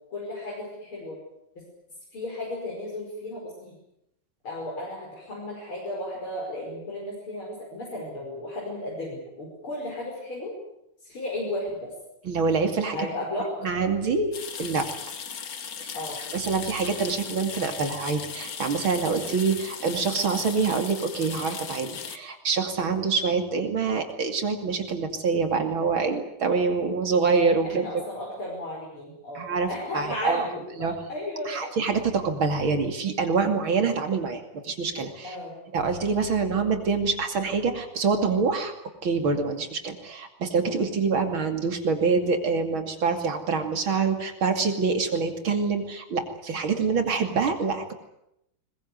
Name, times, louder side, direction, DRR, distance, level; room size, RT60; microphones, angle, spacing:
voice 1, 0.1-1.2 2.1-3.7 4.4-10.5 11.0-11.9 12.8-13.7 15.9-16.2 27.6-29.4 29.7-31.7 32.9-33.1 35.2-35.6, left 1 dB, 75° left, -3 dB, 6.4 m, -34 dB
voice 2, 12.2-13.0 13.6-14.3 14.6-14.9 15.8-15.9 16.3-27.8 29.3-29.7 29.9-30.4 30.8-30.9 31.5-35.4 35.7-38.7 39.0-47.9, right 4 dB, 70° right, 6 dB, 3.4 m, -25 dB
sound 1, 14.3-22.2, left 7 dB, 45° left, 1.7 m, -37 dB
21.5 x 21.0 x 9.6 m, 0.82 s
omnidirectional pair, 2.3 m